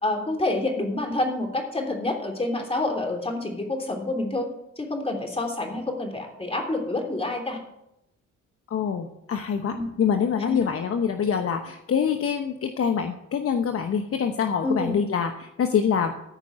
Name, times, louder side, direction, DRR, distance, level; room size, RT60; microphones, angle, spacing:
voice 1, 0.0-4.5 4.8-7.6 9.7-9.9 10.5-10.7 14.6-15.0, left 2 dB, 20° left, 2 dB, 3.2 m, -28 dB
voice 2, 8.7-16.1, left 7 dB, 50° left, 6 dB, 1.0 m, -25 dB
14.0 x 5.3 x 8.7 m, 0.84 s
cardioid pair, 90°, 30 cm